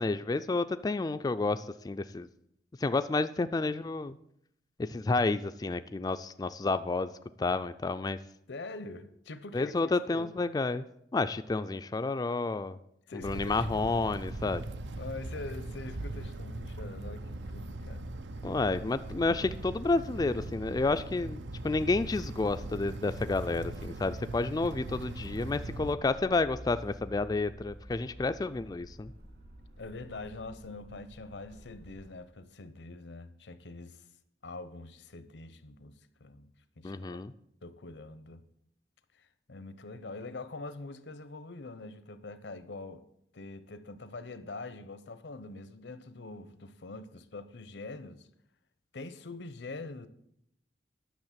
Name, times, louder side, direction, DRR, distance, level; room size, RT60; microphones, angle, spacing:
voice 1, 0.0-2.3 2.8-4.2 4.8-7.1 7.4-8.2 9.5-10.8 11.1-12.8 13.1-14.6 18.4-29.1 36.8-37.3, left 3 dB, 20° left, 0.3 m, -30 dB
voice 2, 8.5-10.3 13.1-13.8 15.0-18.1 29.8-34.0 34.4-37.2 37.6-38.4 39.2-43.0 43.3-48.3 48.9-50.1, left 3 dB, 85° left, 0.8 m, -44 dB
sound 1, 13.2-26.0, right 2 dB, 90° right, 0.6 m, -40 dB
sound 2, 25.7-32.2, equal, 60° right, 2.5 m, -50 dB
10.5 x 6.4 x 7.4 m
head